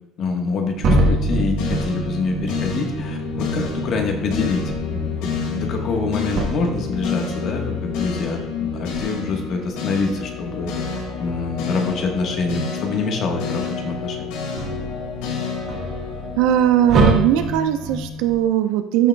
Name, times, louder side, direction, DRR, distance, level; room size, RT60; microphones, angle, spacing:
voice 1, 0.2-4.6 4.9-14.3, left 4 dB, 40° left, 3 dB, 1.4 m, -26 dB
sound 1, 0.7-8.4 8.9-9.1 11.0-11.7 12.3-14.0 14.3-18.4, right 2 dB, 45° right, 1.5 m, -26 dB
sound 2, 1.6-17.9, left 5 dB, 85° left, 2.1 m, -29 dB
voice 2, 16.4-19.1, right 11 dB, 80° right, 7 dB, 0.8 m, -19 dB
13.5 x 6.6 x 2.3 m, 0.91 s
cardioid pair, 175°, 0 cm